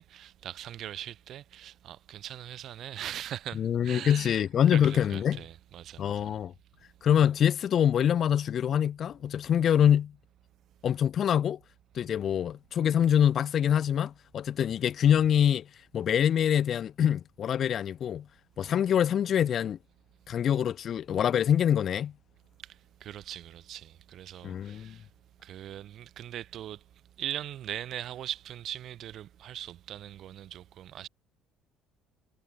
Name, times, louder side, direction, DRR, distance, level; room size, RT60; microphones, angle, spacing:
voice 1, 0.0-6.4 22.6-25.1 25.4-26.8 27.2-31.1, right 11 dB, 60° right, 2.5 m, -41 dB
voice 2, 3.5-5.4 6.0-6.5 7.0-10.1 10.8-11.6 11.9-15.7 15.9-18.3 18.6-19.8 20.3-22.1 24.4-25.0, left 9 dB, 55° left, 1.1 m, -25 dB
hypercardioid pair, 65°, 0 cm